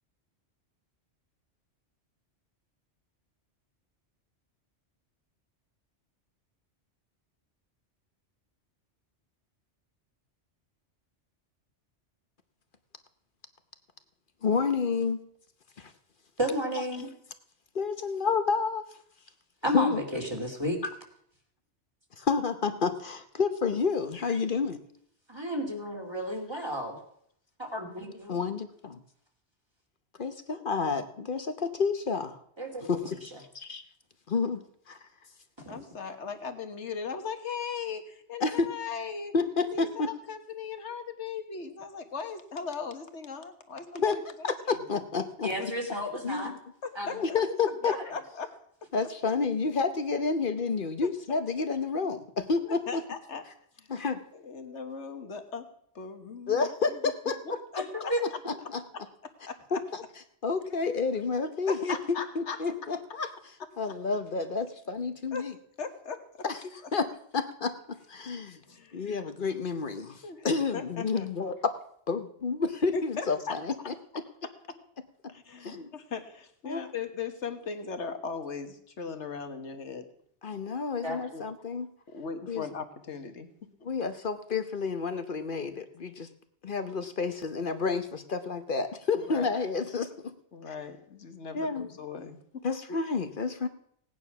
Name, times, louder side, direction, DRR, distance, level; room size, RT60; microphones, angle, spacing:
voice 1, 14.4-15.2 15.8-15.9 17.7-18.8 19.7-20.0 22.2-24.8 26.5-26.6 28.3-29.0 30.2-32.4 32.8-33.2 33.5-33.8 34.3-35.0 38.4-38.7 39.3-40.1 43.9-44.2 44.4-45.5 46.2-46.6 47.1-47.9 48.9-53.0 53.9-54.2 56.5-57.6 58.5-58.8 59.7-59.8 60.4-63.3 63.8-65.5 66.4-67.1 67.3-68.6 68.9-71.6 72.1-73.9 75.6-75.9 76.6-76.9 80.4-81.9 82.5-82.6 83.8-86.3 86.6-90.3 91.5-91.9 92.6-93.7, left 4 dB, 50° left, 10 dB, 1.0 m, -30 dB
voice 2, 16.4-17.1 19.6-20.8 25.3-27.0 27.6-28.4 32.6-32.9 35.6-35.8 45.4-46.5 46.9-47.1 57.8-57.9 58.1-58.2 81.0-81.2, equal, 20° right, 1 dB, 2.8 m, -32 dB
voice 3, 35.7-39.3 39.6-44.5 44.8-44.9 45.6-45.7 46.8-47.4 47.8-48.5 51.0-51.1 52.6-53.4 53.8-53.9 54.3-55.7 55.9-57.0 57.4-58.4 59.2-59.8 61.7-62.6 65.3-65.5 65.8-66.4 68.7-69.1 70.2-70.5 70.7-71.3 72.9-73.6 75.3-80.1 81.3-81.5 82.1-83.5 89.1-89.5 90.5-92.4 92.9-93.0, left 5 dB, 75° left, 7 dB, 1.7 m, -38 dB
17.5 x 9.6 x 5.9 m, 0.69 s
omnidirectional pair, 1.2 m